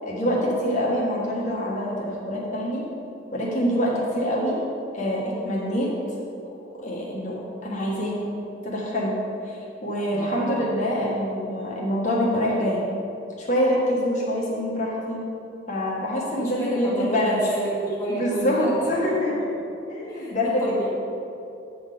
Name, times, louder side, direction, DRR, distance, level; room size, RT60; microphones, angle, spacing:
voice 1, 0.0-2.9 3.3-4.6 4.9-5.9 6.8-8.4 8.6-9.2 9.4-12.8 13.4-15.2 15.7-17.4 18.1-19.6 19.9-20.7, equal, 45° left, -5 dB, 1.5 m, -25 dB
voice 2, 10.1-10.5 16.3-19.4 20.1-21.0, right 1 dB, 15° left, -7 dB, 1.4 m, -31 dB
9.1 x 4.0 x 6.8 m, 2.8 s
head